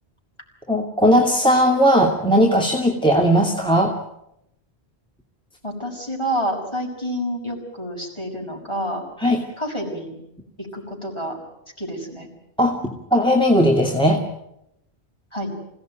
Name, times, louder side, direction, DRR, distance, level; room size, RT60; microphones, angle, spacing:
voice 1, 0.7-3.9 9.2-9.4 12.6-14.2, equal, 5° left, -1 dB, 2.5 m, -18 dB
voice 2, 5.6-9.0 9.6-10.1 10.6-11.4 11.8-12.3 15.3-15.5, equal, 30° left, 1 dB, 6.6 m, -28 dB
27.5 x 17.5 x 9.2 m, 0.82 s
omnidirectional pair, 1.0 m